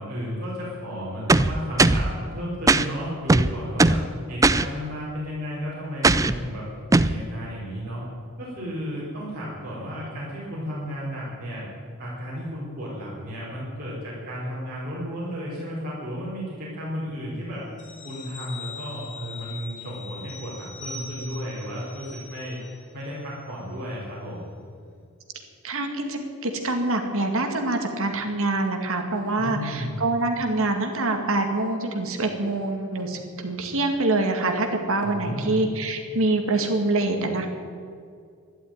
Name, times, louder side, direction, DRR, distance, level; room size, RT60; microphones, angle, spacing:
voice 1, 0.0-4.0 4.3-6.6 7.0-8.0 8.4-11.6 12.0-17.7 18.0-22.6 22.9-24.5 29.4-30.0 35.0-35.7, equal, 45° right, -9 dB, 4.8 m, -33 dB
sound 1, 1.3-2.1 2.7-2.9 3.3-4.1 4.4-4.7 6.0-6.4 6.9-7.2, right 2 dB, 15° right, 0.4 m, -18 dB
sound 2, 17.8-22.9 23.2-23.4, left 4 dB, 55° left, 2.9 m, -41 dB
voice 2, 25.6-37.5, right 2 dB, 65° right, 4 dB, 2.2 m, -25 dB
12.5 x 11.5 x 9.5 m, 2.3 s
head